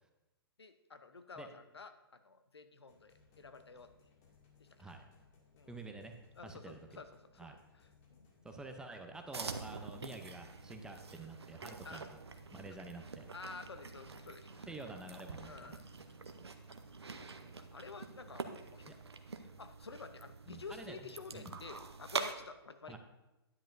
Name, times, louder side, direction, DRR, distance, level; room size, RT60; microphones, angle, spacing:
voice 1, 0.6-3.9 4.6-4.9 5.5-5.8 6.4-7.6 8.1-8.5 11.8-12.1 13.3-14.7 15.4-15.9 17.1-18.9 19.4-23.0, left 4 dB, 85° left, 10 dB, 0.8 m, -51 dB
sound 1, 2.9-17.2, left 5 dB, 40° left, 2.2 m, -66 dB
voice 2, 5.7-6.1 6.4-7.0 7.4-7.6 8.4-12.2 12.5-13.3 14.7-15.8 18.9-19.0 20.5-21.0 21.3-21.5 22.9-23.0, right 2 dB, 5° right, 4 dB, 0.7 m, -48 dB
sound 2, 9.3-22.3, right 4 dB, 85° right, 0.8 m, -46 dB
10.5 x 10.0 x 2.7 m, 1.0 s
figure-of-eight pair, 125°, 13 cm